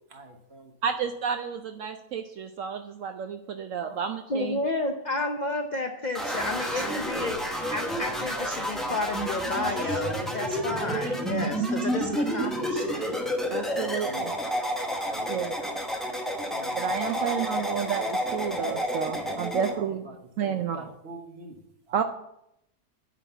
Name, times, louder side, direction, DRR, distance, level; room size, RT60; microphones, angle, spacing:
voice 1, 0.1-0.7 3.8-4.0 6.3-7.4 13.7-14.4 14.8-15.4 16.3-17.6 19.7-20.1 20.4-22.0, right 3 dB, 45° right, 4 dB, 1.2 m, -46 dB
voice 2, 0.8-4.6 13.5-14.1 15.3-15.5 16.8-20.0 20.4-20.9 21.9-22.0, right 7 dB, 70° right, 7 dB, 0.8 m, -31 dB
voice 3, 4.3-13.2, left 2 dB, 55° left, 4 dB, 0.5 m, -31 dB
sound 1, 6.1-19.7, equal, ahead, 0.8 m, -30 dB
9.2 x 3.9 x 6.7 m, 0.79 s
omnidirectional pair, 1.7 m